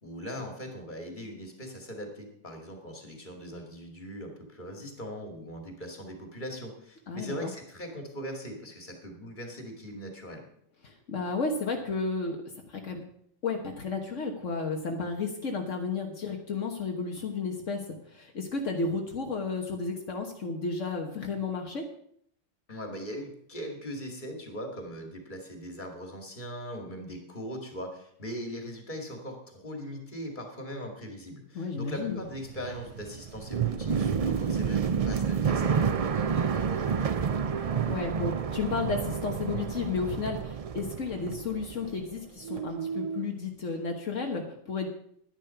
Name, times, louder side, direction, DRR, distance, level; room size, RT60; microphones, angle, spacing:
voice 1, 0.0-10.5 22.7-37.2, equal, 35° left, 3 dB, 2.6 m, -40 dB
voice 2, 7.1-7.5 10.8-12.4 12.7-13.0 13.4-21.8 31.5-32.2 37.9-44.9, left 4 dB, 70° left, 2 dB, 1.6 m, -32 dB
sound 1, 32.1-42.2 42.4-43.3, right 6 dB, 55° right, 0.4 m, -30 dB
11.0 x 10.5 x 5.7 m, 0.68 s
omnidirectional pair, 1.4 m